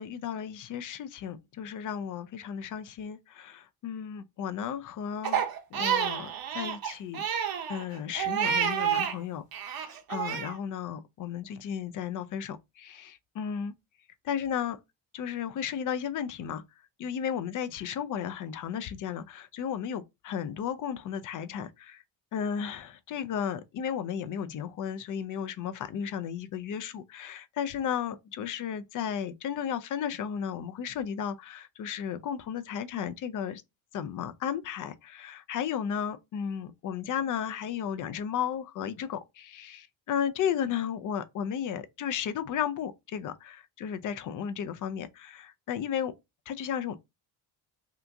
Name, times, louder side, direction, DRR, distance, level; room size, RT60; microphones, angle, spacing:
voice 1, 0.0-5.4 5.7-13.7 14.2-14.8 15.1-16.6 17.0-22.0 22.3-33.6 33.9-46.1 46.5-47.0, left 8 dB, 45° left, 0.5 m, -34 dB
Crying sobbing, 5.2-9.2 9.5-10.5, right 9 dB, 50° right, 0.8 m, -29 dB
2.8 x 2.4 x 3.4 m
cardioid pair, 105°, 46 cm